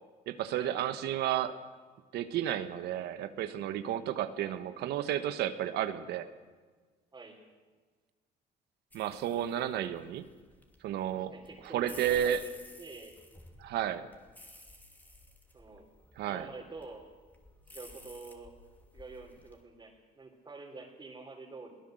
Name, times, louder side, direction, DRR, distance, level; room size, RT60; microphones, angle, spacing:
voice 1, 0.3-1.6 2.1-6.3 8.9-10.2 10.8-11.3 11.6-12.4 13.6-14.1 16.2-16.5, right 11 dB, 80° right, 10 dB, 1.2 m, -32 dB
voice 2, 4.3-4.8 7.1-7.4 11.1-13.2 15.5-15.9 16.2-17.1 17.7-18.6 18.9-21.8, right 3 dB, 25° right, -3 dB, 3.5 m, -48 dB
sound 1, 8.9-19.6, left 1 dB, 10° left, 2.8 m, -54 dB
22.5 x 16.5 x 7.8 m, 1.4 s
cardioid pair, 110°, 17 cm